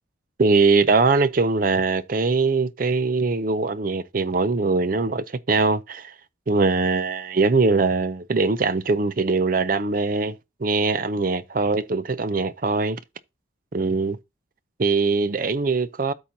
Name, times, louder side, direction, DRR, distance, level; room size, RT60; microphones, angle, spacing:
voice 1, 0.4-6.1 6.5-13.0 13.7-14.2 14.8-16.1, right 3 dB, 45° right, 0.5 m, -22 dB
13.0 x 4.4 x 2.7 m
head